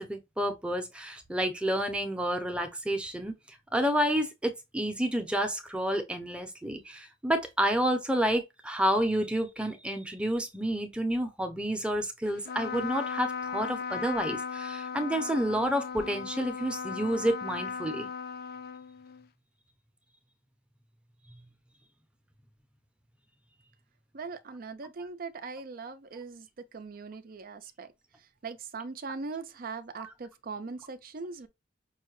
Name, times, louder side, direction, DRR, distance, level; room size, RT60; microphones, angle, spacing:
voice 1, 0.0-3.3 3.7-18.1 30.0-30.1, equal, 5° right, 0.7 m, -29 dB
Trumpet, 12.4-19.3, left 6 dB, 55° left, 0.5 m, -37 dB
voice 2, 24.1-27.9 28.4-31.5, right 4 dB, 50° right, 0.5 m, -40 dB
5.4 x 2.2 x 3.1 m
head